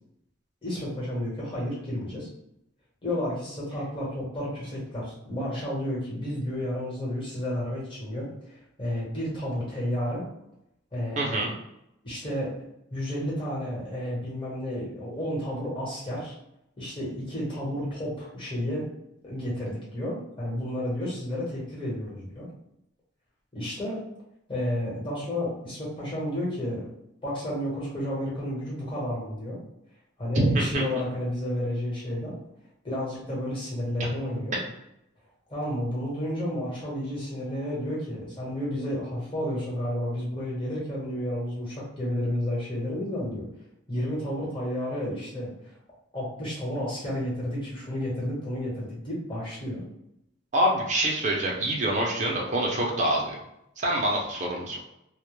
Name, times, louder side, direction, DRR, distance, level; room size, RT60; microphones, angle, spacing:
voice 1, 0.6-2.3 3.0-10.2 10.9-11.4 12.0-12.5 12.9-16.4 16.8-18.9 19.2-22.5 23.5-24.0 24.5-26.8 27.2-29.6 30.2-32.3 32.8-34.6 35.5-43.5 43.9-45.8 46.1-49.8, left 1 dB, 25° left, -6 dB, 1.0 m, -31 dB
voice 2, 11.2-11.5 30.4-30.9 50.5-53.4 53.8-54.8, right 1 dB, 35° right, -2 dB, 0.5 m, -25 dB
2.1 x 2.1 x 3.0 m, 0.81 s
head